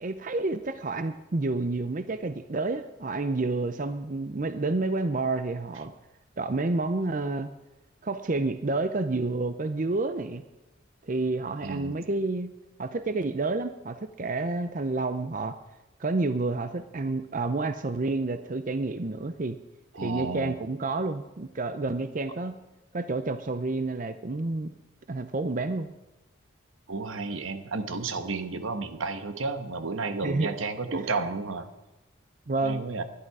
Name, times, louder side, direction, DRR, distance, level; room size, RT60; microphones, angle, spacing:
voice 1, 0.0-5.9 6.4-7.5 8.0-10.4 11.1-12.5 12.8-15.6 16.0-19.6 20.0-22.6 22.9-24.7 25.1-25.9 30.2-30.5 30.9-31.1 32.5-32.8, right 3 dB, 40° right, 10 dB, 0.6 m, -29 dB
voice 2, 11.6-12.0 20.0-20.6 26.9-31.7 32.6-33.0, right 3 dB, 85° right, 9 dB, 1.3 m, -32 dB
20.5 x 11.5 x 4.8 m, 1.0 s
head